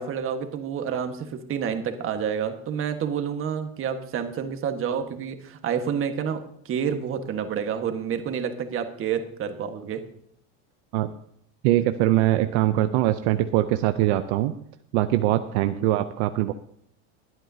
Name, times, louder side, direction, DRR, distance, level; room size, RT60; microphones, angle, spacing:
voice 1, 0.0-10.0 15.6-15.9, right 7 dB, 35° right, 7 dB, 1.5 m, -29 dB
voice 2, 11.6-14.5 14.9-16.5, right 14 dB, 70° right, 9 dB, 0.7 m, -22 dB
22.0 x 8.9 x 2.8 m, 0.67 s
supercardioid pair, 130°, 35 cm